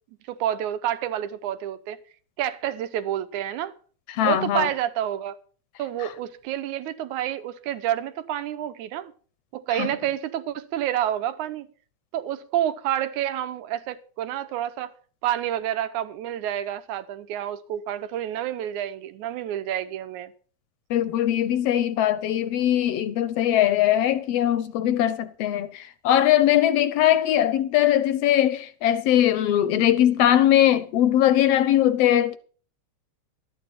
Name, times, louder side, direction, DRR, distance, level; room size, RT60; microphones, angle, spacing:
voice 1, 0.3-2.0 2.4-3.7 4.2-5.4 5.8-9.1 9.5-11.7 12.1-14.9 15.2-20.3, right 11 dB, 85° right, 2.2 m, -29 dB
voice 2, 4.1-4.7 9.7-9.9 20.9-32.4, left 11 dB, 70° left, 1.6 m, -21 dB
12.5 x 9.4 x 5.7 m
omnidirectional pair, 3.4 m